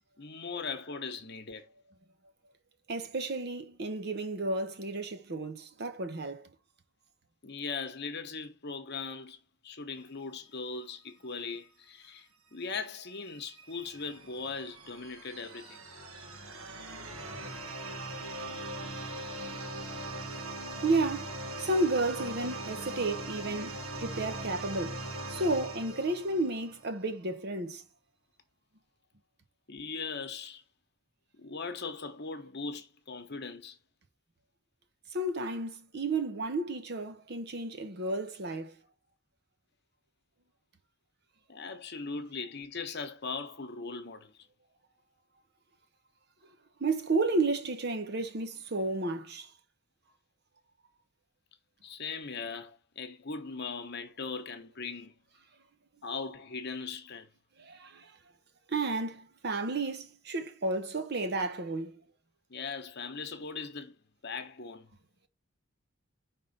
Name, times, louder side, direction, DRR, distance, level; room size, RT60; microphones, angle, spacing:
voice 1, 0.2-1.6 7.4-15.8 29.7-30.6 31.4-33.8 41.5-44.4 51.8-55.1 56.0-57.3 62.5-64.0 64.2-64.9, left 4 dB, 50° left, 1.0 m, -39 dB
voice 2, 2.9-6.5 20.3-20.4 20.8-25.0 25.3-27.8 35.1-38.7 46.8-49.5 57.6-58.1 58.7-61.9, right 2 dB, 50° right, 0.9 m, -32 dB
sound 1, 13.1-26.9, right 2 dB, 85° right, 1.7 m, -41 dB
5.4 x 3.7 x 5.3 m
head